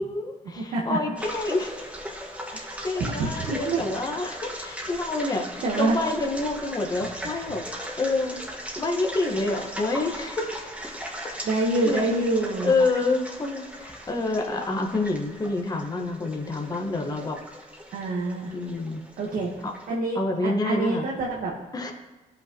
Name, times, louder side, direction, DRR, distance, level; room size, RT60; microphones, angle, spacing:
voice 1, 0.0-1.7 2.8-5.5 5.8-7.6 8.0-10.5 11.3-11.5 11.8-12.0 12.6-17.4 18.5-19.0 19.6-19.7 20.1-21.0 21.7-21.9, left 2 dB, 25° left, 2 dB, 1.3 m, -27 dB
voice 2, 0.5-1.0 2.5-3.8 5.6-6.0 11.4-12.7 17.9-18.5 19.2-19.5 19.9-21.5, right 2 dB, 70° right, -3 dB, 1.3 m, -26 dB
sound 1, 1.2-20.0, equal, 10° right, 1.7 m, -38 dB
14.5 x 5.7 x 3.0 m, 1.2 s
cardioid pair, 95°, 15 cm